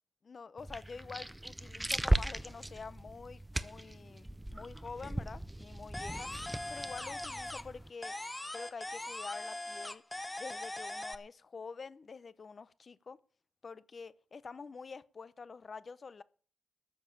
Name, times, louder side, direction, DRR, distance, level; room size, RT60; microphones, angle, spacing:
voice 1, 0.2-6.3 6.7-8.1 8.5-10.0 10.4-13.2 13.6-16.2, left 5 dB, 40° left, 0.7 m, -47 dB
sound 1, 0.6-7.9, right 1 dB, 5° right, 0.6 m, -37 dB
sound 2, 5.9-7.8 8.0-11.1, left 1 dB, 10° left, 0.9 m, -41 dB
13.5 x 7.1 x 8.5 m
wide cardioid pair, 125°, 0 cm